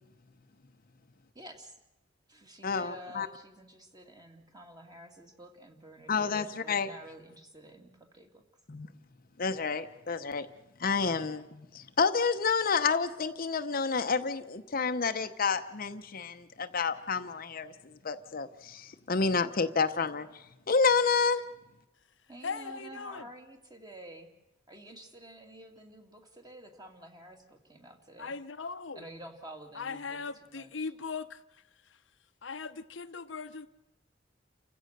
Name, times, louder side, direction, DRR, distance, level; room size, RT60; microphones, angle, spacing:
voice 1, 1.3-1.8 2.3-6.3 6.6-8.4 22.3-24.3 24.7-28.3 28.9-30.9, right 1 dB, 20° right, 2.5 m, -50 dB
voice 2, 2.6-3.3 6.1-6.9 8.7-8.9 9.4-10.5 10.8-20.3 20.7-21.4, left 5 dB, 50° left, 0.8 m, -29 dB
voice 3, 22.4-23.3 28.2-29.0 29.7-32.0 32.4-33.7, left 5 dB, 80° left, 0.9 m, -39 dB
29.5 x 15.5 x 6.7 m
head